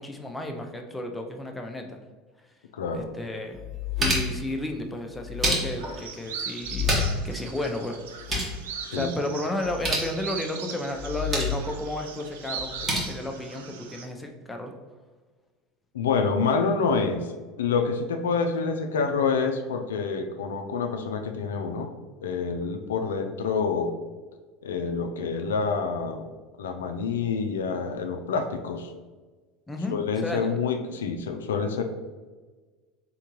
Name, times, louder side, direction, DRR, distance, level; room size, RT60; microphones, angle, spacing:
voice 1, 0.0-2.0 2.9-3.6 4.0-8.0 8.9-14.7 29.7-30.0 30.2-30.6, left 1 dB, 10° left, 3 dB, 0.6 m, -33 dB
voice 2, 2.7-3.1 8.8-9.1 15.9-17.3 17.6-21.9 22.2-23.9 24.6-26.3 26.6-28.9 29.9-31.8, left 5 dB, 85° left, 5 dB, 0.3 m, -27 dB
sound 1, 3.0-3.1 3.5-4.4 5.1-6.0 6.6-7.3 7.6-7.7 8.0-8.6 9.6-10.1 11.0-11.6 12.6-13.0, left 1 dB, 30° right, 1.3 m, -28 dB
sound 2, 5.7-14.1, right 6 dB, 80° right, 0.4 m, -39 dB
3.7 x 3.5 x 3.0 m, 1.4 s
hypercardioid pair, 85°, 0 cm